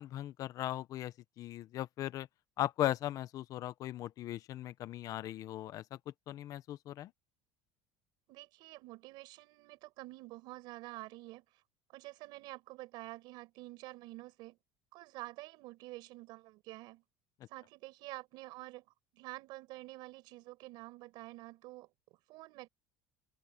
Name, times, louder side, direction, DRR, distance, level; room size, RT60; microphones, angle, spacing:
voice 1, 0.0-2.3 2.6-6.0 6.3-7.1, left 13 dB, 45° left, 0.7 m, -38 dB
voice 2, 8.3-11.4 11.9-14.6 14.9-17.0 17.5-18.8 19.1-21.9 22.3-22.7, right 20 dB, 65° right, 4.8 m, -48 dB
open air
cardioid pair, 145°, 8 cm